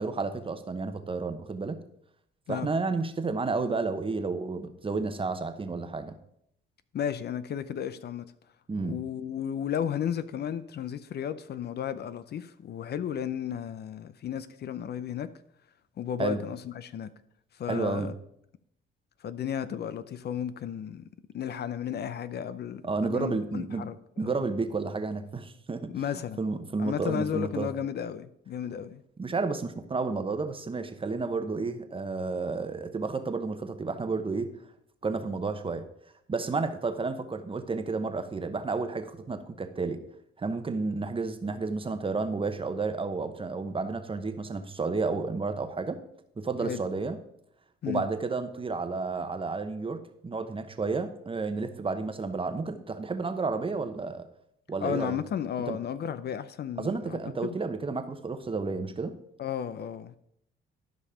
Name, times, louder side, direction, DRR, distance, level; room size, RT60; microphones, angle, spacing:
voice 1, 0.0-1.8 2.5-6.2 8.7-9.0 16.2-16.4 17.7-18.1 22.8-23.9 24.2-27.7 29.2-34.5 35.0-35.8 36.3-40.0 40.4-46.0 46.4-47.2 47.9-54.2 54.7-55.2 55.7-55.8 56.8-59.1, right 4 dB, 25° right, 1.0 m, -31 dB
voice 2, 6.9-8.3 8.8-15.3 16.0-17.1 17.6-18.2 19.2-21.0 21.3-24.0 24.2-24.4 25.9-26.4 26.8-29.0 46.6-46.8 47.8-48.0 54.8-57.6 59.4-60.1, left 9 dB, 55° left, 0.6 m, -33 dB
12.5 x 5.3 x 5.0 m
cardioid pair, 90°, 20 cm